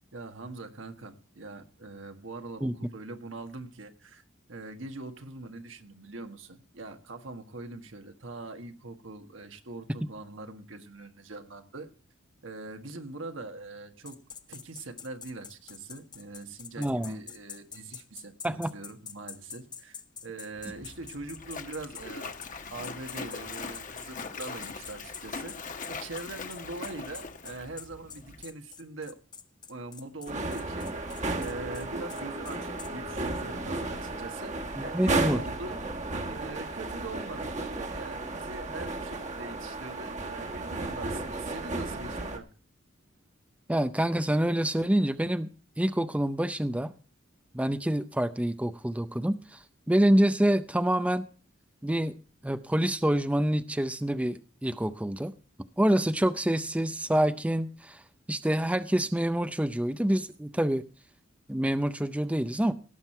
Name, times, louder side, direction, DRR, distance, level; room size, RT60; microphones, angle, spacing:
voice 1, 0.1-4.2 4.5-11.9 12.4-14.2 14.5-20.0 20.2-22.4 22.7-29.2 29.7-30.9 31.3-35.8 36.2-42.5, right 2 dB, 75° right, 1.6 m, -42 dB
sound 1, 14.1-22.1 22.4-22.5 22.8-32.9, left 6 dB, 20° left, 0.9 m, -45 dB
voice 2, 16.8-17.2 18.4-18.7 34.8-35.4 43.7-45.5 45.8-46.9 47.5-51.3 51.8-52.1 52.4-55.3 55.8-58.0 58.3-60.8 61.5-62.7, right 1 dB, 5° right, 0.5 m, -27 dB
Splash splatter, 20.5-28.4, left 4 dB, 40° left, 1.1 m, -41 dB
sound 2, 30.3-42.4, right 2 dB, 40° right, 1.6 m, -34 dB
17.5 x 7.6 x 4.4 m
head